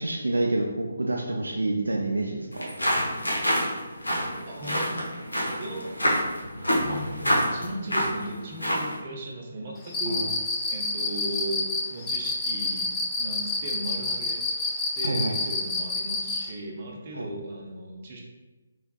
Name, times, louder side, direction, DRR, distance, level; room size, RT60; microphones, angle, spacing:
voice 1, 0.0-2.7 10.0-10.3 15.0-15.3 17.1-17.3, right 2 dB, 75° right, 0 dB, 0.4 m, -28 dB
sound 1, 2.5-9.0, equal, 80° left, 1.1 m, -27 dB
voice 2, 4.5-5.0 5.6-5.9 6.7-11.6 11.9-12.9 13.2-14.4 14.9-18.2, right 1 dB, 35° right, -1 dB, 0.7 m, -37 dB
Cricket, 9.9-16.5, left 3 dB, 10° left, 0.4 m, -28 dB
3.9 x 3.2 x 2.3 m, 1.2 s
figure-of-eight pair, 145°, 0 cm